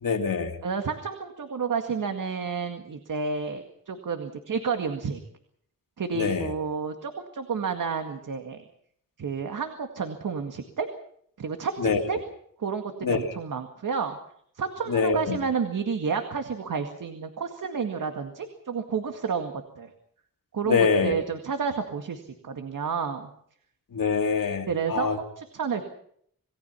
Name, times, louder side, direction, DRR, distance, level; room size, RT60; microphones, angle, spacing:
voice 1, 0.0-0.5 6.1-6.5 11.8-12.0 13.0-13.2 14.9-15.4 20.7-21.2 23.9-25.2, left 5 dB, 75° left, 4 dB, 2.8 m, -24 dB
voice 2, 0.6-5.2 6.0-8.6 9.2-10.9 11.4-12.2 12.6-14.2 14.6-19.9 20.5-23.3 24.7-25.1 25.4-25.9, right 5 dB, 70° right, 6 dB, 2.0 m, -30 dB
27.5 x 18.5 x 5.8 m, 0.65 s
wide cardioid pair, 160°, 33 cm